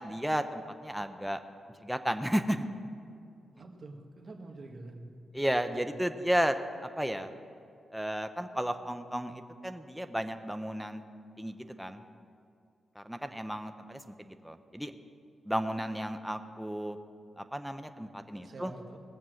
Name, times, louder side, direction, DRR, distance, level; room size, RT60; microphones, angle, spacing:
voice 1, 0.0-1.4 1.8-2.7 5.3-7.3 7.9-11.0 11.4-12.0 13.0-14.9 15.5-17.0 17.4-18.7, equal, ahead, 7 dB, 0.7 m, -33 dB
voice 2, 3.5-5.1 18.4-19.0, right 2 dB, 45° right, 1 dB, 1.7 m, -46 dB
19.5 x 7.4 x 6.3 m, 2.4 s
wide cardioid pair, 120°, 0 cm